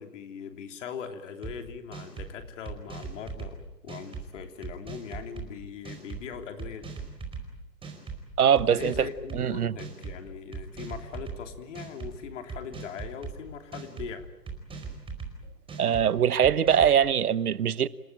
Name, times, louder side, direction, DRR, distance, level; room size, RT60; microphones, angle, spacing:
voice 1, 0.0-6.9 8.7-14.3, left 7 dB, 50° left, 3.3 m, -40 dB
sound 1, 1.4-1.5 1.9-2.3 2.7-3.5 3.9-4.2 4.6-5.5 5.8-6.2 6.6-7.4 7.8-8.2 8.6-9.4 9.8-10.2 10.5-11.4 11.7-12.1 12.5-13.3 13.7-14.1 14.5-15.3 15.7-16.0 16.4-17.0, right 5 dB, 10° right, 4.7 m, -39 dB
voice 2, 8.4-9.1 9.3-9.7 15.8-17.9, right 8 dB, 65° right, 1.1 m, -22 dB
28.5 x 18.0 x 9.1 m
figure-of-eight pair, 130°, 48 cm